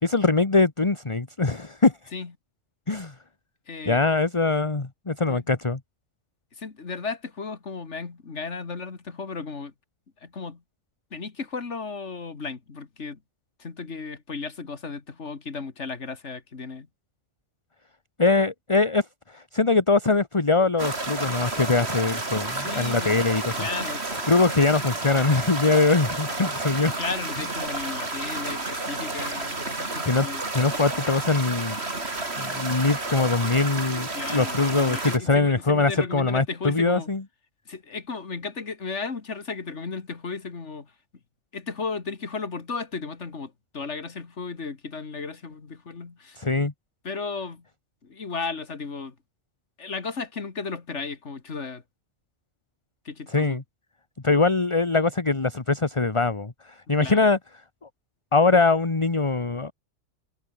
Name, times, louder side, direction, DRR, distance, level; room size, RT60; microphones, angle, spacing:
voice 1, 0.0-2.0 2.9-3.1 3.8-5.8 18.2-23.7 24.1-26.9 30.0-30.3 30.5-31.8 32.4-37.2 46.4-46.7 53.3-53.6 54.2-57.4 58.3-59.7, left 3 dB, 25° left, 1.5 m, -22 dB
voice 2, 3.7-4.0 5.3-5.5 6.5-9.7 10.2-10.6 11.1-13.2 13.6-16.9 22.5-23.2 23.6-24.2 27.0-30.4 34.1-37.1 37.7-40.9 41.5-46.4 47.0-47.7 48.0-49.2 49.8-51.8 53.0-53.6 57.0-57.2, left 4 dB, 60° left, 2.4 m, -35 dB
sound 1, 20.8-35.2, right 2 dB, 50° right, 3.7 m, -31 dB
omnidirectional pair, 1.4 m